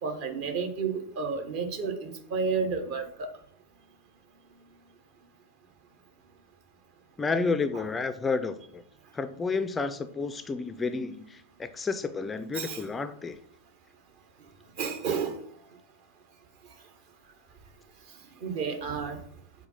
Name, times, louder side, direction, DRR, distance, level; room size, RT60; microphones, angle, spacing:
voice 1, 0.0-3.3 7.7-7.8 12.5-12.8 14.8-15.4 18.4-19.2, right 5 dB, 45° right, 6 dB, 1.0 m, -31 dB
voice 2, 7.2-8.8 9.1-13.4, left 4 dB, 15° left, 11 dB, 0.3 m, -31 dB
4.9 x 4.0 x 5.4 m, 0.64 s
figure-of-eight pair, 90°, 0 cm